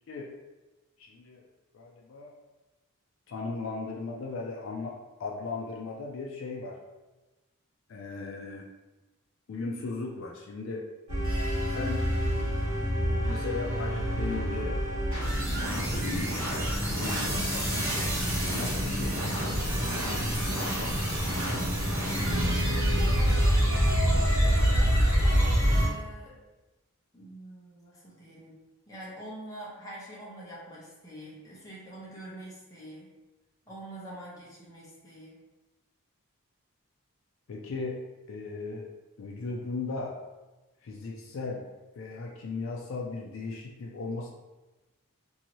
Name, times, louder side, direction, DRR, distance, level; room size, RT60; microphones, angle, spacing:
voice 1, 1.0-1.4 1.7-2.3 3.3-6.8 7.9-8.6 9.5-10.8 11.6-12.2 13.3-14.8 15.7-16.4 16.9-19.2 19.7-21.4 37.5-38.0 38.3-38.9 39.2-40.2 40.8-41.7 41.9-44.3, left 3 dB, 65° left, -1 dB, 0.4 m, -37 dB
sound 1, 11.1-25.9, equal, 70° right, 1.2 m, -26 dB
voice 2, 23.1-24.8 25.6-26.4 27.1-28.6 28.9-33.1 33.7-35.4, right 1 dB, 15° left, -7 dB, 0.7 m, -45 dB
2.8 x 2.6 x 2.9 m, 1.1 s
head